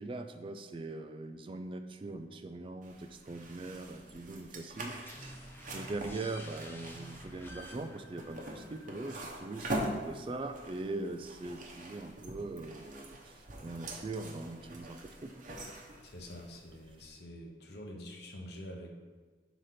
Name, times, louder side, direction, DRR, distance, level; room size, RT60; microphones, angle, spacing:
voice 1, 0.0-5.2 5.7-13.3 13.6-15.5, right 2 dB, 30° right, 8 dB, 0.3 m, -41 dB
sound 1, 2.8-17.1, right 1 dB, 45° right, 0.9 m, -44 dB
sound 2, 5.1-10.5, left 1 dB, 15° left, 0.6 m, -52 dB
voice 2, 16.0-18.9, equal, 65° left, 1 dB, 0.9 m, -46 dB
4.9 x 4.0 x 5.8 m, 1.4 s
head